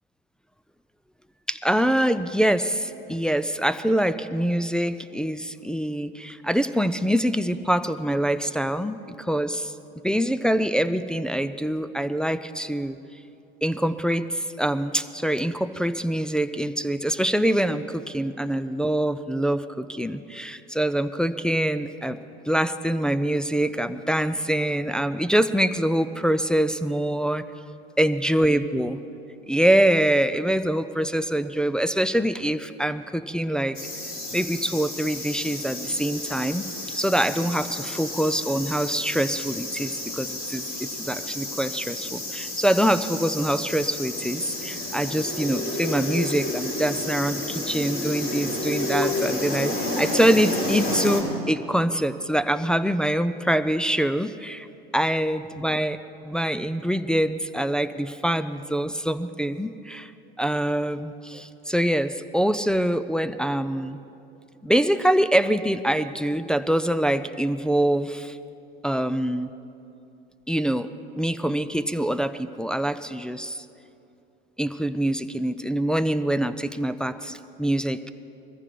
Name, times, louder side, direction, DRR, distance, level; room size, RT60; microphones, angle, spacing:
voice 1, 1.5-9.7 10.0-13.0 13.6-22.2 22.5-27.4 28.0-29.0 29.5-33.8 34.3-36.6 36.9-54.7 54.9-56.0 56.2-60.1 60.4-64.0 64.6-68.4 68.8-69.5 70.5-70.9 71.1-73.6 74.6-78.1, right 1 dB, 5° left, 10 dB, 0.4 m, -24 dB
sound 1, 33.7-51.2, left 1 dB, 40° left, 4.1 m, -31 dB
21.0 x 14.5 x 4.6 m, 2.7 s
hypercardioid pair, 80°, 32 cm